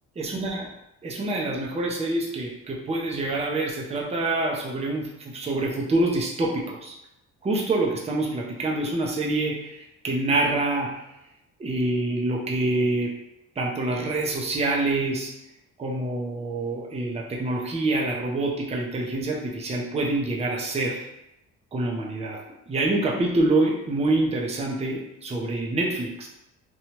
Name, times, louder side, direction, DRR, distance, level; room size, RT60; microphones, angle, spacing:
voice 1, 0.2-0.6 1.0-7.0 7.4-9.7 10.0-11.0 11.6-13.1 13.6-15.3 15.8-21.0 21.7-22.4 22.7-26.3, right 2 dB, 20° right, -2 dB, 0.6 m, -26 dB
2.8 x 2.3 x 3.0 m, 0.89 s
cardioid pair, 90°, 30 cm